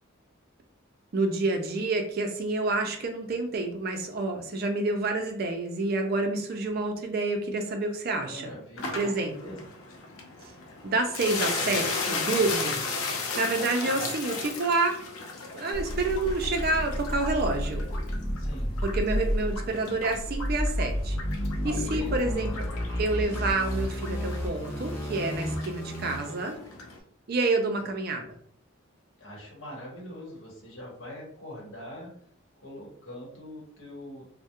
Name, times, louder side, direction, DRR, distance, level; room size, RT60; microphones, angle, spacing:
voice 1, 1.1-8.5 8.9-9.6 10.4-10.5 10.8-12.8 13.4-15.0 15.5-17.8 18.8-21.2 21.6-22.7 23.0-26.6 27.3-28.4, right 2 dB, 45° right, 4 dB, 0.4 m, -28 dB
voice 2, 8.2-8.9 9.4-9.7 18.3-18.7 21.6-22.1 29.2-32.1 32.6-34.3, left 1 dB, 65° left, -3 dB, 0.9 m, -43 dB
sound 1, 8.8-27.0, left 3 dB, 90° left, 0.5 m, -36 dB
sound 2, 15.7-26.5, equal, 10° left, 0.6 m, -31 dB
2.3 x 2.0 x 2.8 m, 0.63 s
head